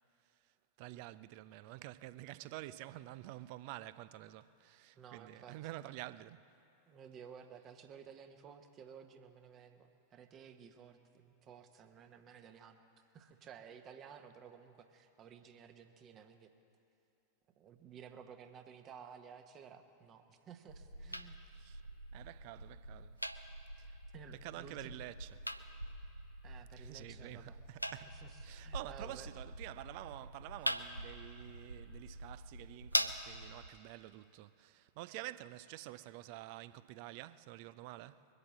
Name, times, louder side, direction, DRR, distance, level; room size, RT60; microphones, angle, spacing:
voice 1, 0.4-6.5 21.5-21.8 22.1-23.2 23.8-24.0 24.3-25.5 26.8-38.3, right 16 dB, 45° right, 0.4 m, -49 dB
voice 2, 5.0-5.6 6.9-16.5 17.6-21.5 24.1-24.9 26.4-27.6 28.2-28.3 28.6-29.3, right 7 dB, 30° right, 1.0 m, -55 dB
sound 1, 20.7-33.7, equal, 90° left, 0.5 m, -43 dB
22.0 x 8.3 x 7.4 m
figure-of-eight pair, 90°, 0 cm